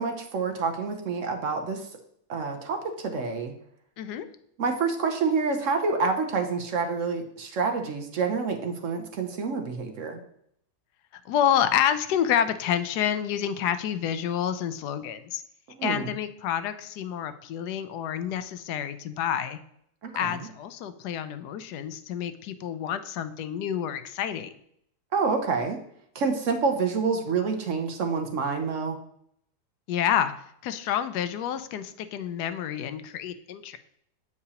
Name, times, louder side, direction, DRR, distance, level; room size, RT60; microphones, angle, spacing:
voice 1, 0.0-1.9 2.3-3.5 4.6-10.2 15.7-16.2 20.0-20.5 25.1-25.8 26.1-29.0, right 4 dB, 60° right, 5 dB, 0.9 m, -28 dB
voice 2, 11.3-15.4 15.8-19.6 20.1-24.5 29.9-30.3 30.6-33.8, left 9 dB, 85° left, 11 dB, 1.1 m, -28 dB
8.1 x 4.7 x 2.8 m, 0.70 s
omnidirectional pair, 1.7 m